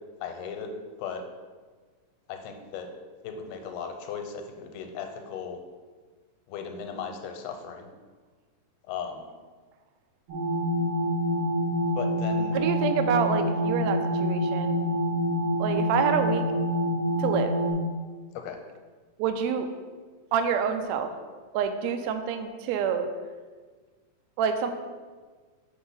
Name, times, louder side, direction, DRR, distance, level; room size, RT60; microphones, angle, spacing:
voice 1, 0.2-0.7 1.0-1.2 2.3-2.9 3.2-5.6 6.5-7.9 8.9-9.3 11.9-12.6 18.4-18.6, left 6 dB, 85° left, 5 dB, 2.1 m, -36 dB
sound 1, 10.3-17.7, equal, 65° right, 1.5 m, -26 dB
voice 2, 12.5-14.8 15.6-16.4 17.2-17.6 19.2-19.7 20.3-21.1 21.5-23.1 24.4-24.7, right 7 dB, 85° right, 7 dB, 1.5 m, -27 dB
4.6 x 4.5 x 5.4 m, 1.4 s
omnidirectional pair, 3.7 m